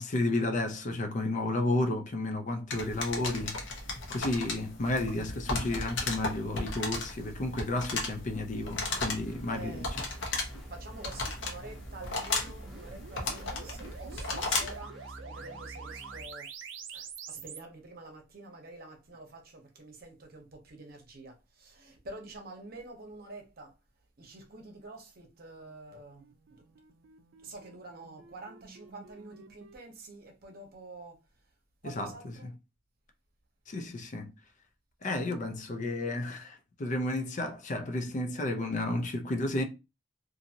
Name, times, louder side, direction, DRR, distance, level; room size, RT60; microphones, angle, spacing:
voice 1, 0.0-3.6 4.1-9.9 31.8-32.1 33.7-34.3 35.0-39.6, left 2 dB, 40° left, 0.5 m, -32 dB
sound 1, 2.7-14.8, left 3 dB, 70° left, 0.9 m, -35 dB
sound 2, 8.7-16.2, right 1 dB, ahead, 0.8 m, -48 dB
voice 2, 9.5-10.3 10.7-16.5 16.9-23.8 24.2-26.6 27.4-31.2 31.8-32.5, right 2 dB, 50° right, 0.8 m, -48 dB
sound 3, 12.6-17.6 25.9-29.8, right 6 dB, 75° right, 0.5 m, -48 dB
2.6 x 2.6 x 2.7 m
head